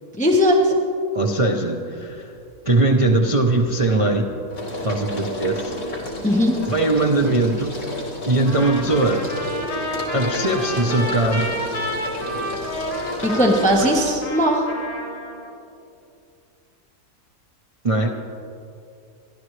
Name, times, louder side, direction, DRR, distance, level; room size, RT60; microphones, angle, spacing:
voice 1, 0.2-0.7 6.2-6.6 13.2-14.7, equal, 5° left, -2 dB, 1.2 m, -18 dB
voice 2, 1.1-2.3 2.6-4.3 4.8-5.8 6.6-7.7 8.3-9.3 10.1-11.5 13.5-13.9 17.8-18.1, right 2 dB, 30° right, 1 dB, 0.7 m, -20 dB
sound 1, 2.1-2.6 3.0-14.1, left 1 dB, 80° left, 2.9 m, -32 dB
Trumpet, 8.5-15.5, equal, 40° left, 2.7 m, -30 dB
29.5 x 12.5 x 3.3 m, 2.6 s
omnidirectional pair, 1.6 m